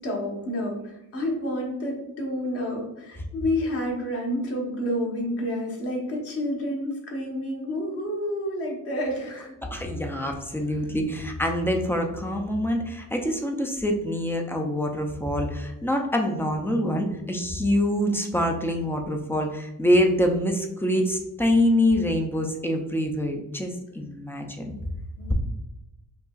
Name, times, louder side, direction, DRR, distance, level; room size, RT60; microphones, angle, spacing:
voice 1, 0.0-9.6 25.2-25.3, left 1 dB, 45° left, -1 dB, 1.1 m, -29 dB
voice 2, 9.6-24.7, left 1 dB, 5° left, 3 dB, 0.4 m, -25 dB
5.1 x 2.9 x 2.3 m, 0.88 s
cardioid pair, 160°, 31 cm